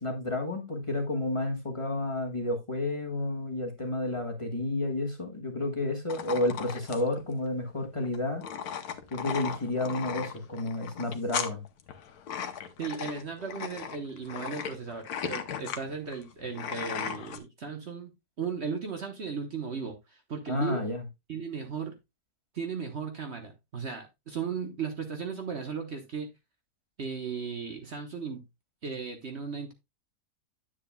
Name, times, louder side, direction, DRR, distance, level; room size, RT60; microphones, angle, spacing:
voice 1, 0.0-8.4 9.1-11.6 20.5-21.0, left 2 dB, 20° left, 1.3 m, -31 dB
sound 1, 6.1-17.4, left 8 dB, 75° left, 1.4 m, -37 dB
voice 2, 12.8-18.1 18.4-20.9 21.3-22.0 22.5-26.3 27.0-28.5 28.8-29.7, right 5 dB, 45° right, 1.2 m, -36 dB
9.8 x 7.4 x 2.2 m
omnidirectional pair, 1.7 m